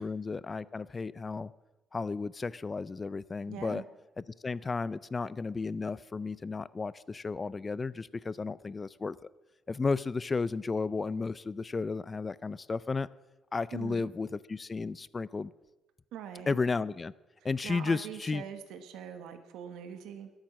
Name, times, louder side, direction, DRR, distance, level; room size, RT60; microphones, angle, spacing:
voice 1, 0.0-1.5 1.9-3.8 4.4-9.2 9.7-13.1 13.5-15.5 16.5-17.1 17.4-18.4, left 4 dB, 25° left, 19 dB, 0.4 m, -33 dB
voice 2, 3.5-3.8 13.7-14.1 16.1-16.6 17.6-20.3, right 9 dB, 90° right, 8 dB, 1.3 m, -43 dB
21.5 x 8.9 x 6.2 m, 1.1 s
cardioid pair, 115°, 0 cm